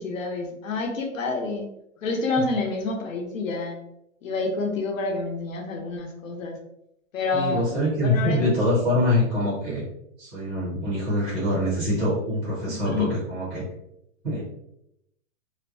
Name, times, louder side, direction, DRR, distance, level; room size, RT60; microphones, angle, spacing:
voice 1, 0.0-1.7 2.0-3.8 4.2-6.5 7.1-7.7 8.0-8.4 12.8-13.1, left 3 dB, 85° left, 2 dB, 0.8 m, -28 dB
voice 2, 7.3-9.8 10.2-13.6 14.2-14.4, left 1 dB, 5° right, -9 dB, 0.4 m, -24 dB
2.8 x 2.1 x 2.6 m, 0.80 s
hypercardioid pair, 160°, 38 cm